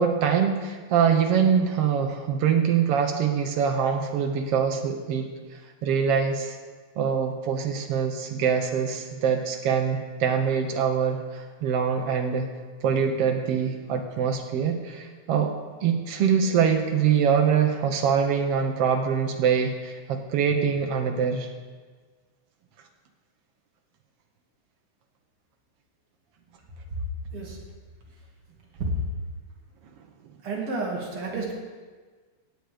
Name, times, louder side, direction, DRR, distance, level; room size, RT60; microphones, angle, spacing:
voice 1, 0.0-5.3 5.8-6.6 7.0-12.5 12.8-15.5 15.8-21.5, right 7 dB, 80° right, 4 dB, 1.3 m, -24 dB
voice 2, 30.4-31.5, right 3 dB, 45° right, -2 dB, 2.7 m, -31 dB
17.5 x 8.0 x 5.1 m, 1.4 s
omnidirectional pair, 3.9 m